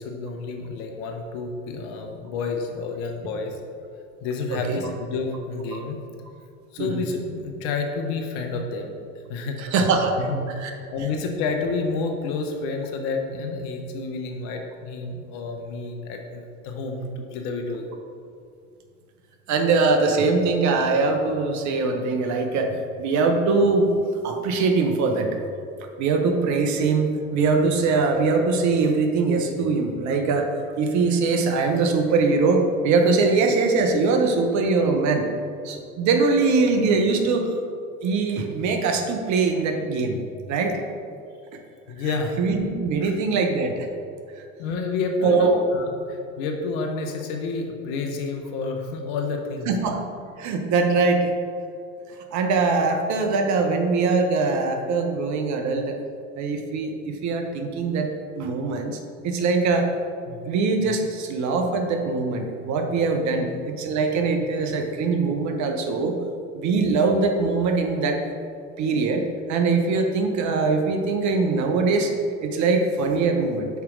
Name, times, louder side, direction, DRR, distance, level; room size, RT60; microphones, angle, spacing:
voice 1, 0.0-3.6 4.2-6.0 6.7-8.9 9.3-9.7 10.1-17.9 41.9-42.4 43.0-43.1 44.6-49.7 60.3-60.4 63.3-63.4, left 4 dB, 60° left, 3 dB, 0.9 m, -29 dB
voice 2, 4.5-4.8 6.8-7.0 9.6-10.2 10.6-10.7 19.5-23.9 24.2-25.3 26.0-35.3 35.6-37.5 38.0-40.2 40.5-40.8 42.4-43.9 45.2-45.6 49.7-50.0 50.4-51.3 52.3-56.0 56.4-58.1 58.4-59.0 59.2-59.9 60.5-66.1 66.5-68.2 68.8-69.2 69.5-72.1 72.4-73.7, right 4 dB, 45° right, 4 dB, 0.8 m, -22 dB
5.8 x 4.4 x 3.7 m, 2.4 s
hypercardioid pair, 75°, 39 cm